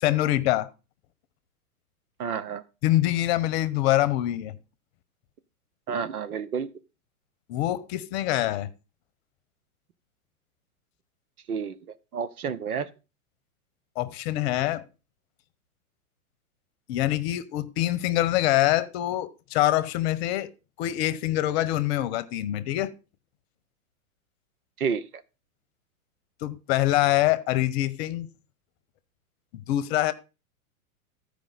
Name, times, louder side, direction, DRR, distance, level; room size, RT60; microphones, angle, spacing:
voice 1, 0.0-0.7 2.8-4.5 7.5-8.7 14.0-14.8 16.9-20.5 20.8-22.9 26.4-28.3 29.5-30.1, left 14 dB, 45° left, 0.9 m, -25 dB
voice 2, 2.2-2.6 5.9-6.7 11.5-12.9 24.8-25.1, right 6 dB, 90° right, 0.9 m, -30 dB
14.5 x 4.9 x 3.9 m
hypercardioid pair, 120°, 43 cm